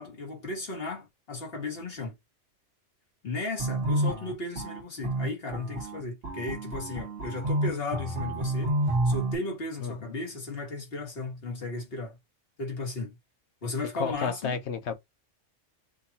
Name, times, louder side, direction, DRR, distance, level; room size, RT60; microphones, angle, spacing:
voice 1, 0.0-2.1 3.2-8.7 9.0-12.2 12.6-13.2 13.6-14.6, left 2 dB, 55° left, 1.6 m, -35 dB
sound 1, 3.6-9.4, right 1 dB, 55° right, 1.3 m, -29 dB
voice 2, 9.8-10.2 13.9-15.0, left 6 dB, 70° left, 1.0 m, -32 dB
3.5 x 2.3 x 4.0 m
omnidirectional pair, 1.2 m